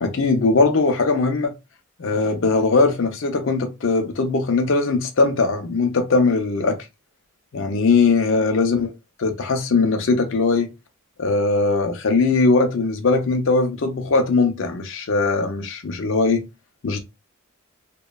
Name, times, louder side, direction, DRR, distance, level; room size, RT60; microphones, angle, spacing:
voice 1, 0.0-1.5 2.0-6.8 7.5-8.9 9.2-10.7 11.2-16.5 16.8-17.0, left 3 dB, 60° left, 0.5 m, -20 dB
2.9 x 2.1 x 2.2 m
head